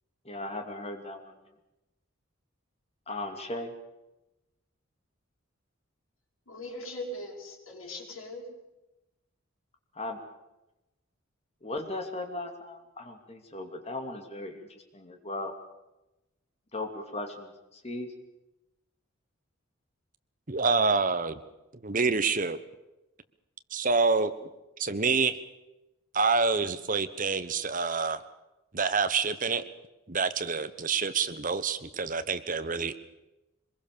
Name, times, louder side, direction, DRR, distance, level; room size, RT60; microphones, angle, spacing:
voice 1, 0.2-1.4 3.1-3.7 9.9-10.2 11.6-14.7 14.9-15.5 16.7-18.1, left 2 dB, 30° left, 5 dB, 2.7 m, -37 dB
voice 2, 6.5-8.5, left 1 dB, 85° left, -3 dB, 5.8 m, -40 dB
voice 3, 20.5-21.4 21.8-22.6 23.7-24.3 24.8-25.4 26.1-28.2 28.7-29.6 30.1-32.9, right 4 dB, 40° right, 11 dB, 1.2 m, -27 dB
24.0 x 21.5 x 6.9 m, 0.97 s
head